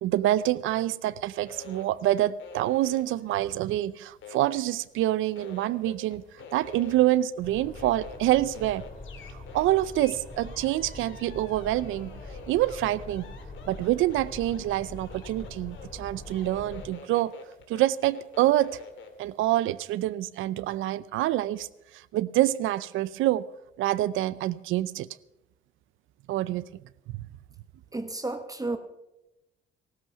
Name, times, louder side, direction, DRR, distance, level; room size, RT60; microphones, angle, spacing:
voice 1, 0.0-6.2 6.5-8.8 9.5-12.1 12.5-13.3 13.7-17.3 17.7-18.8 19.2-21.7 22.1-23.5 23.8-25.1 26.3-26.7, right 14 dB, 90° right, 0.6 m, -26 dB
sound 1, 1.5-5.0 5.3-19.2, left 5 dB, 75° left, 2.2 m, -47 dB
sound 2, 7.4-16.9, left 2 dB, 45° left, 5.0 m, -43 dB
voice 2, 27.9-28.8, right 2 dB, 20° right, 1.2 m, -32 dB
16.0 x 13.0 x 5.8 m
cardioid pair, 90°, 20 cm